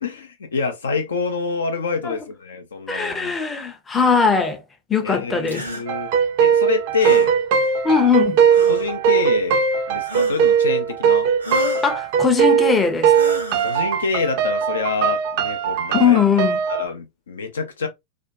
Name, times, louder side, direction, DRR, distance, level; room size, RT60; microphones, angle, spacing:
voice 1, 0.0-3.4 5.0-6.1 6.4-7.3 8.7-11.3 13.6-16.2 16.7-17.9, left 4 dB, 70° left, 0.4 m, -26 dB
voice 2, 2.9-4.6 4.9-5.6 7.8-8.4 11.8-13.1 15.9-16.6, left 6 dB, 15° left, 0.5 m, -19 dB
sound 1, 5.5-5.8 7.0-7.3 8.5-8.9 10.1-10.6 11.4-11.9 13.1-13.8, equal, 90° right, 0.6 m, -31 dB
sound 2, 5.9-16.9, right 7 dB, 45° right, 0.4 m, -19 dB
2.5 x 2.1 x 2.5 m
figure-of-eight pair, 90°, 0 cm